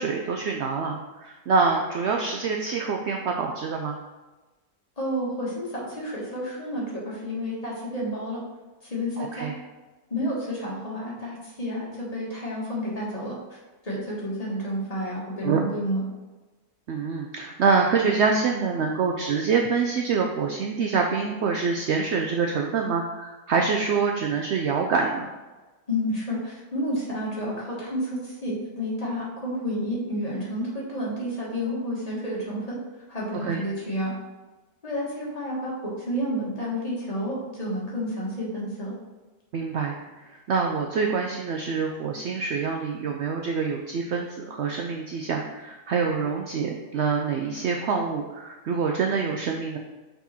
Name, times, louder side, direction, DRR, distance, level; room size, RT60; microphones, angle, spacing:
voice 1, 0.0-4.0 9.2-9.5 15.4-15.7 16.9-25.3 33.4-33.6 39.5-49.8, right 5 dB, 75° right, 1 dB, 0.6 m, -26 dB
voice 2, 5.0-8.4 8.9-9.5 10.1-13.6 13.8-16.0 25.9-32.8 33.1-34.1 34.8-38.9, equal, 25° left, -5 dB, 1.6 m, -30 dB
5.9 x 4.1 x 4.2 m, 1.2 s
omnidirectional pair, 1.7 m